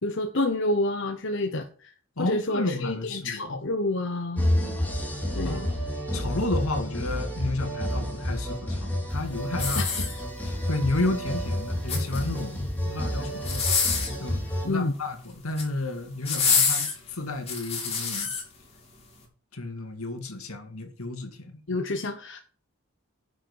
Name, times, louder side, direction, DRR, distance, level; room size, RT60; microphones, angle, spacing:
voice 1, 0.0-1.9 2.3-4.5 5.3-5.7 9.8-10.1 14.6-14.9 21.7-22.4, left 2 dB, 60° left, 1.0 m, -28 dB
voice 2, 2.2-3.5 5.4-5.7 6.1-9.9 10.4-13.7 14.2-18.3 19.5-21.5, left 2 dB, 85° left, 2.2 m, -32 dB
sound 1, 4.4-14.7, equal, 10° left, 3.0 m, -30 dB
sound 2, 9.5-10.6 11.7-12.4 13.4-14.2 15.3-15.7 16.2-18.4 19.0-19.1, left 5 dB, 30° left, 3.1 m, -27 dB
10.5 x 6.5 x 4.8 m
head